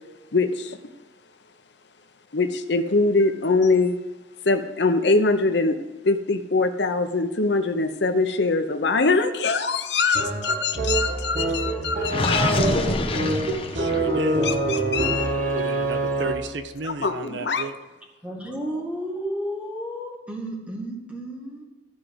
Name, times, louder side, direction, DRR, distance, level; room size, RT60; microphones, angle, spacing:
voice 1, 0.3-0.8 2.3-4.0 4.4-5.8 6.0-12.6 14.4-15.3 16.8-17.6, left 3 dB, 65° left, 8 dB, 0.9 m, -23 dB
sound 1, 10.1-16.6, right 2 dB, 45° right, 1.6 m, -25 dB
Gurgling, 12.0-14.2, left 2 dB, 30° left, 1.0 m, -25 dB
voice 2, 13.7-14.5 15.5-17.7, right 3 dB, 85° right, 10 dB, 0.7 m, -33 dB
voice 3, 18.2-21.6, equal, 5° right, -1 dB, 2.1 m, -32 dB
14.0 x 5.0 x 7.8 m, 1.2 s
head